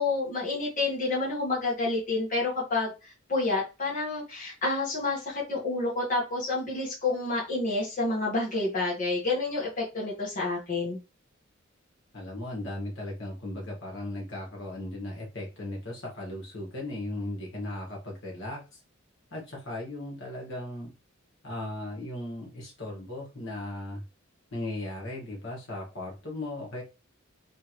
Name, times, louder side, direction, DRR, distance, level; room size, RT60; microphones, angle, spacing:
voice 1, 0.0-11.0, left 3 dB, 40° left, -6 dB, 1.4 m, -29 dB
voice 2, 12.1-18.8 19.3-20.9 21.4-24.0 24.5-26.8, left 1 dB, 60° left, -3 dB, 1.6 m, -37 dB
3.4 x 3.2 x 3.0 m, 0.29 s
head